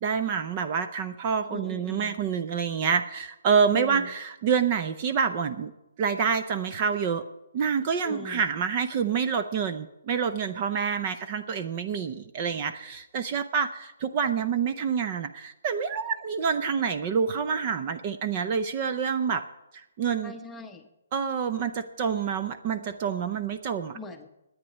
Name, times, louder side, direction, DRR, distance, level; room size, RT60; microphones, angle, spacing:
voice 1, 0.0-5.7 6.0-7.3 7.5-19.4 19.7-20.3 21.1-24.0, right 6 dB, 25° right, 8 dB, 0.6 m, -27 dB
voice 2, 1.5-2.2 3.7-4.1 8.0-8.4 20.2-20.9 23.9-24.3, left 1 dB, 5° left, 5 dB, 0.9 m, -40 dB
11.0 x 9.5 x 9.8 m, 0.92 s
hypercardioid pair, 170°, 0 cm